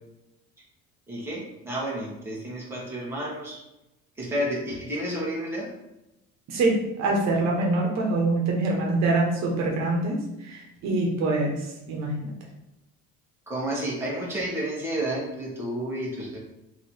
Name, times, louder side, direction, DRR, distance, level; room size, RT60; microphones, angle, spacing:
voice 1, 1.1-3.6 4.2-5.7 13.5-16.4, right 1 dB, 10° right, -5 dB, 1.4 m, -31 dB
voice 2, 6.5-12.3, right 2 dB, 60° right, -1 dB, 1.1 m, -25 dB
3.2 x 3.0 x 4.2 m, 0.91 s
cardioid pair, 125°, 30 cm